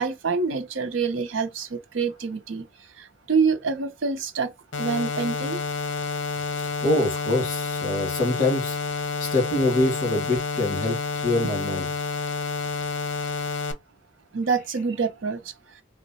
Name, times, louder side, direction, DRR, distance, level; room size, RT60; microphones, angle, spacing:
voice 1, 0.0-2.6 3.0-4.5 4.8-5.6 14.3-15.4, right 5 dB, 75° right, 0.6 m, -26 dB
sound 1, 4.7-13.7, left 4 dB, 70° left, 0.7 m, -29 dB
voice 2, 6.6-8.8 9.2-11.9, left 2 dB, 45° left, 1.7 m, -25 dB
3.1 x 2.1 x 4.1 m
head